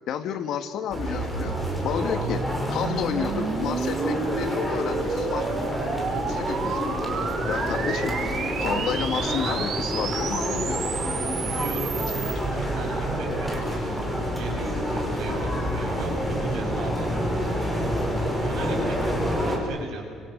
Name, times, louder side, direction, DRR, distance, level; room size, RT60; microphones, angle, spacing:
voice 1, 0.0-1.6 1.8-5.5 6.3-7.1 7.5-8.1 8.6-10.9, left 8 dB, 60° left, 9 dB, 1.8 m, -31 dB
sound 1, 0.9-19.6, equal, 5° right, 5.0 m, -28 dB
sound 2, 1.0-12.3, right 6 dB, 50° right, 2.8 m, -32 dB
voice 2, 11.4-12.0 12.4-17.5 18.4-20.1, right 3 dB, 75° right, 1 dB, 7.3 m, -37 dB
29.5 x 25.5 x 6.6 m, 2.1 s
cardioid pair, 140°, 0 cm